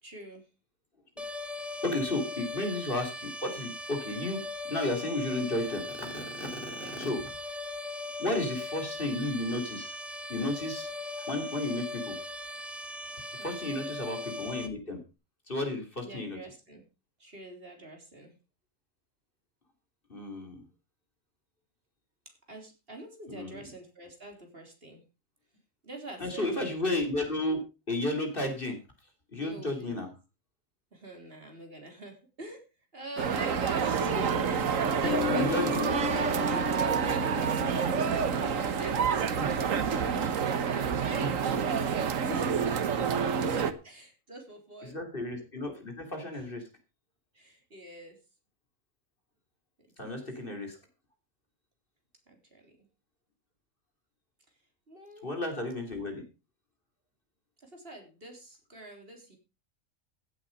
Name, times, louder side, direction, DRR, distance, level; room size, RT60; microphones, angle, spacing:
voice 1, 0.0-0.5 6.7-7.0 13.4-13.9 16.0-16.8 17.2-18.3 22.5-25.0 25.8-26.5 29.4-30.1 30.9-32.6 32.9-34.2 34.5-40.3 40.6-41.3 41.8-43.1 43.8-45.0 46.3-46.4 47.3-48.2 50.0-50.3 52.3-52.7 54.9-55.3 57.6-59.4, right 2 dB, 45° right, 3 dB, 3.8 m, -45 dB
sound 1, 1.2-14.7, left 2 dB, ahead, 1.2 m, -39 dB
voice 2, 1.8-4.4 4.7-7.2 8.2-9.9 10.3-10.9 11.2-12.1 13.4-15.0 15.5-16.4 20.1-20.6 23.3-23.6 26.2-27.6 27.9-28.8 29.3-30.1 35.3-35.9 39.4-39.5 41.2-41.6 44.9-46.7 50.0-50.8 55.2-56.2, left 2 dB, 40° left, 5 dB, 3.4 m, -33 dB
sound 2, 33.2-43.7, right 6 dB, 75° right, 1.5 m, -28 dB
Piano, 34.0-41.1, left 5 dB, 70° left, 1.7 m, -36 dB
16.0 x 8.6 x 5.2 m, 0.31 s
omnidirectional pair, 1.4 m